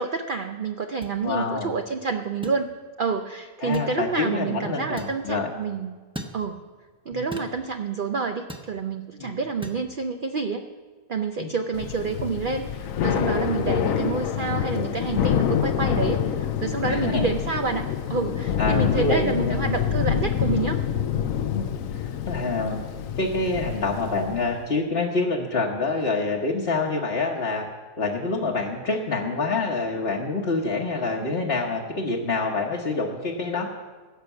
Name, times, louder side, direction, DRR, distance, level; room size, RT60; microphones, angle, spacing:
voice 1, 0.0-2.7 3.0-6.0 6.3-6.6 7.1-10.6 11.1-20.8 31.2-31.3, right 4 dB, 55° right, 6 dB, 0.6 m, -28 dB
sound 1, 1.0-1.2 2.4-2.6 3.7-3.9 5.0-5.2 6.1-6.4 7.3-7.6 8.5-8.7 9.6-9.8, right 1 dB, 5° right, 0.8 m, -37 dB
voice 2, 1.2-1.7 3.6-5.5 7.1-7.2 9.2-9.3 11.4-11.5 16.9-17.3 18.6-19.6 21.5-22.8 23.2-27.7 28.0-33.7, left 3 dB, 40° left, -2 dB, 1.3 m, -26 dB
Thunder / Rain, 11.7-24.6, left 9 dB, 65° left, 1.0 m, -26 dB
16.5 x 6.7 x 8.1 m, 1.4 s
omnidirectional pair, 1.6 m